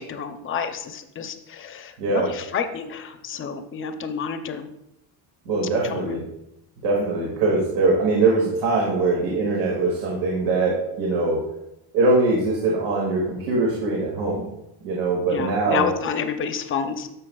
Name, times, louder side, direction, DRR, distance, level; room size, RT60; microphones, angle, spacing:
voice 1, 0.0-4.7 5.8-6.2 15.3-17.1, left 6 dB, 30° left, 7 dB, 0.6 m, -29 dB
voice 2, 2.0-2.3 5.5-6.2 6.8-11.4 11.9-14.5 14.8-15.9, right 3 dB, 80° right, -2 dB, 2.1 m, -22 dB
12.0 x 6.9 x 2.3 m, 0.86 s
cardioid pair, 175°, 41 cm